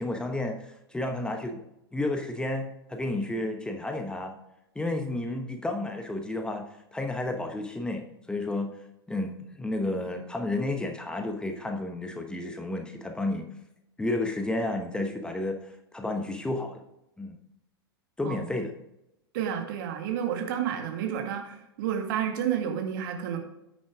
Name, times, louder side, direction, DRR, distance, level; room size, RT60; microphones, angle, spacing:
voice 1, 0.0-1.6 1.9-4.4 4.7-6.7 6.9-8.8 9.1-13.5 14.0-16.8 17.2-17.4 18.2-18.7, left 2 dB, 5° left, 4 dB, 1.0 m, -31 dB
voice 2, 19.3-23.4, right 9 dB, 55° right, 4 dB, 2.0 m, -30 dB
9.6 x 6.3 x 3.6 m, 0.85 s
figure-of-eight pair, 95°, 13 cm